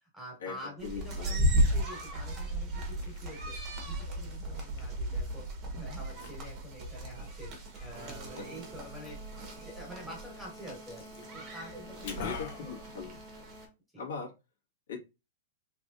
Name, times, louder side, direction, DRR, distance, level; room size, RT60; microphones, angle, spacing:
voice 1, 0.0-3.5 3.8-5.4 5.7-9.2 9.4-12.3 12.6-12.7 13.9-14.0, right 1 dB, ahead, 1.5 m, -47 dB
voice 2, 0.8-1.4 8.3-8.4 12.0-13.2 14.0-14.3 14.9-15.0, left 6 dB, 90° left, 1.6 m, -39 dB
sound 1, 0.8-13.7, right 1 dB, 25° right, 1.1 m, -35 dB
Liquid, 2.7-13.7, left 6 dB, 50° left, 1.0 m, -50 dB
sound 2, 8.0-9.5, right 5 dB, 65° right, 0.9 m, -51 dB
3.4 x 3.2 x 2.6 m
supercardioid pair, 165°, 0 cm